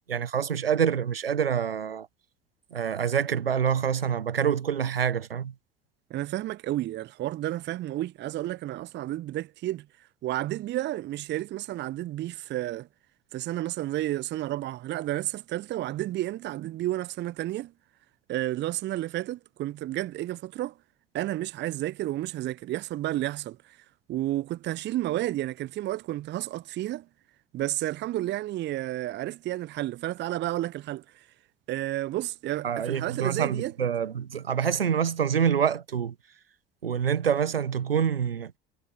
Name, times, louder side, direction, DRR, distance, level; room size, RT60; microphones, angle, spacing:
voice 1, 0.0-2.1 2.7-5.5 32.6-36.1 36.8-38.5, right 8 dB, 80° right, 1.4 m, -26 dB
voice 2, 6.1-12.9 13.3-17.7 18.3-20.8 21.1-23.8 24.1-27.1 27.5-31.3 31.7-33.7, right 15 dB, 40° right, 0.7 m, -31 dB
figure-of-eight pair, 60°, 29 cm